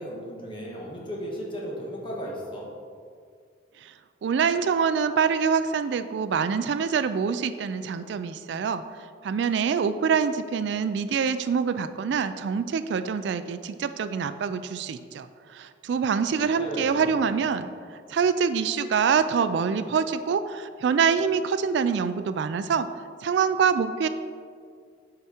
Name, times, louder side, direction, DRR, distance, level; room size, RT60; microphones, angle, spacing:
voice 1, 0.0-2.7 16.3-17.2, equal, 25° left, -3 dB, 1.4 m, -35 dB
voice 2, 4.2-8.8 9.2-22.9 23.2-24.1, right 6 dB, 65° right, 11 dB, 0.3 m, -25 dB
8.6 x 4.7 x 4.4 m, 2.1 s
head